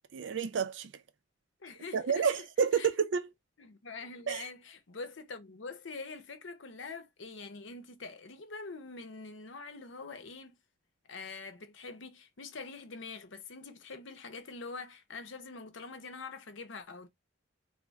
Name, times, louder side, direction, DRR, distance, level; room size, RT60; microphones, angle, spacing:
voice 1, 0.1-0.9 1.9-3.3 4.3-4.4, right 6 dB, 70° right, 0.4 m, -29 dB
voice 2, 1.6-2.5 2.7-2.9 3.6-10.5 11.1-17.1, left 4 dB, 75° left, 0.8 m, -45 dB
3.5 x 2.0 x 4.0 m
head